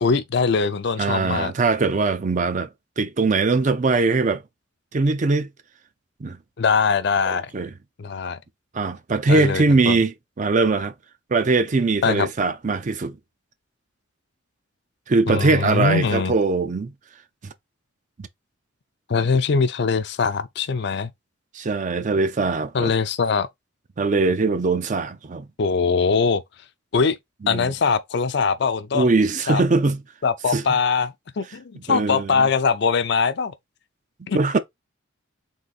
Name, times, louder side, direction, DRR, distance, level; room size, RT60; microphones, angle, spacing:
voice 1, 0.0-1.5 6.6-7.5 8.0-8.4 9.3-10.0 12.0-12.3 15.3-16.3 19.1-21.1 22.7-23.5 25.6-26.4 26.9-27.2 27.5-29.1 29.5-29.6 30.2-33.5 34.3-34.6, left 5 dB, 60° left, 0.5 m, -22 dB
voice 2, 1.0-2.7 3.0-4.4 4.9-5.5 6.2-6.4 7.3-7.7 8.7-10.9 11.3-13.2 15.1-16.9 17.4-17.5 18.2-18.3 21.5-22.9 24.0-25.5 27.4-27.7 28.9-30.0 30.5-30.6 31.9-32.5 34.3-34.6, right 3 dB, 40° right, 0.5 m, -21 dB
3.8 x 2.7 x 4.0 m
head